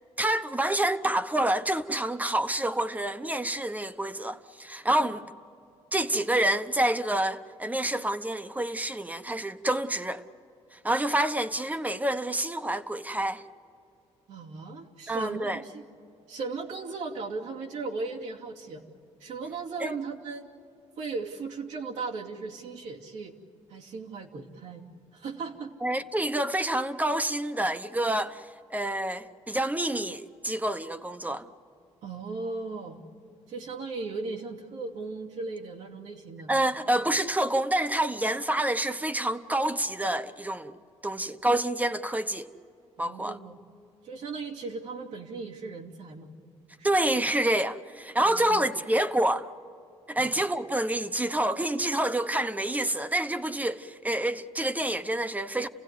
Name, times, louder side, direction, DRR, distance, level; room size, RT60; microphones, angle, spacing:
voice 1, 0.2-5.2 5.9-10.2 10.7-13.4 15.1-15.6 19.8-20.0 25.8-31.5 36.5-40.7 41.0-42.5 43.0-43.4 46.8-49.5 50.1-55.7, right 1 dB, 15° right, 1.0 m, -28 dB
voice 2, 14.3-15.8 16.3-18.8 19.2-20.5 21.0-23.3 23.7-24.8 25.1-25.8 32.0-33.0 33.5-36.5 43.0-43.6 44.0-46.3 46.8-46.9 48.2-48.6 50.2-50.3, right 4 dB, 85° right, 2.6 m, -37 dB
30.0 x 16.0 x 9.6 m
cardioid pair, 90°, 12 cm